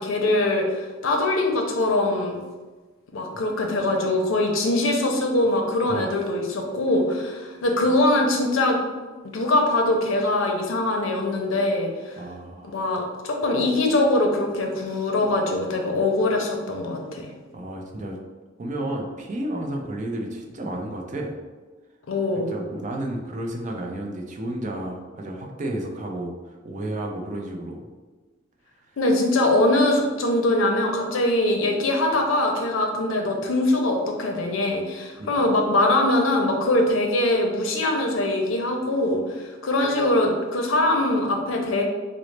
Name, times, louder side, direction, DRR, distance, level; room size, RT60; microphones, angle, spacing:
voice 1, 0.0-2.4 3.1-8.8 9.3-12.2 12.7-17.3 22.1-22.5 29.0-41.8, left 1 dB, 85° left, 2 dB, 0.5 m, -22 dB
voice 2, 5.9-6.2 7.8-8.0 12.2-12.8 17.5-18.2 18.6-21.4 22.5-27.9 35.2-35.4, right 1 dB, 40° right, 1 dB, 0.5 m, -32 dB
3.9 x 2.0 x 3.2 m, 1.3 s
head